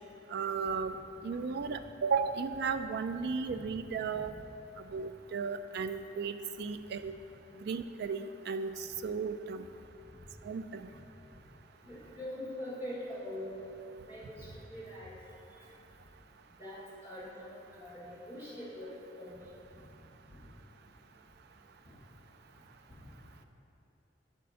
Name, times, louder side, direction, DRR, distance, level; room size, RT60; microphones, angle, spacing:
voice 1, 0.3-1.0 1.2-4.3 4.9-7.1 7.6-9.7 10.4-10.9, right 5 dB, 60° right, 10 dB, 0.4 m, -35 dB
voice 2, 11.8-13.6 14.1-15.1 16.6-19.5, left 1 dB, 15° right, -9 dB, 1.6 m, -43 dB
8.9 x 4.2 x 5.5 m, 2.7 s
head